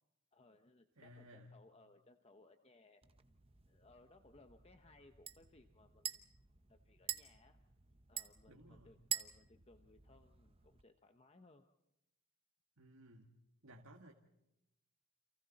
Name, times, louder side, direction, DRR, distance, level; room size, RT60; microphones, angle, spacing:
voice 1, 0.3-3.0 3.6-6.2 6.7-7.6 8.1-11.6, left 2 dB, 25° left, 6 dB, 0.9 m, -65 dB
voice 2, 1.0-1.6 8.5-9.0 12.8-14.1, equal, 65° right, 2 dB, 1.9 m, -59 dB
sound 1, 3.0-10.8, right 8 dB, 25° right, 0.9 m, -48 dB
29.5 x 28.0 x 4.2 m, 0.90 s
head